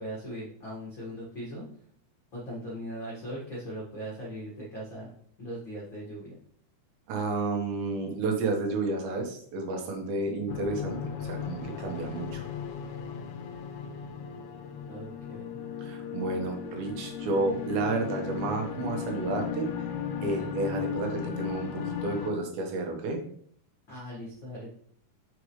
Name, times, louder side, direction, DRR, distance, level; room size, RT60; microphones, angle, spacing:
voice 1, 0.0-1.7 2.3-5.1 5.4-6.3 14.9-15.5 17.2-17.3 20.4-20.5 23.9-24.7, equal, 65° left, -5 dB, 1.1 m, -39 dB
voice 2, 7.1-12.4 15.8-19.7 20.2-23.2, right 3 dB, 75° right, 2 dB, 3.4 m, -31 dB
sound 1, 10.5-22.3, left 7 dB, 80° left, 2.2 m, -36 dB
6.8 x 6.6 x 3.2 m, 0.62 s
omnidirectional pair, 5.1 m